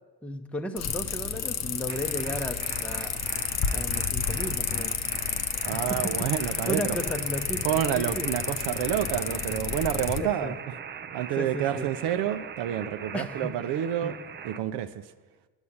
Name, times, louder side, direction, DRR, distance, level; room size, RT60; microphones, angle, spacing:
voice 1, 0.2-3.2 3.7-5.0 5.7-6.1 6.4-8.3 10.2-10.6 11.4-11.9 13.1-14.2, equal, 5° left, 5 dB, 0.7 m, -35 dB
sound 1, 0.8-10.2, left 7 dB, 40° left, 0.7 m, -31 dB
sound 2, 1.9-14.6, right 8 dB, 25° right, 0.4 m, -41 dB
voice 2, 5.6-7.0 7.6-10.5 11.1-14.1 14.4-14.9, right 11 dB, 70° right, 9 dB, 0.7 m, -28 dB
9.7 x 8.2 x 8.6 m, 1.4 s
supercardioid pair, 90°, 42 cm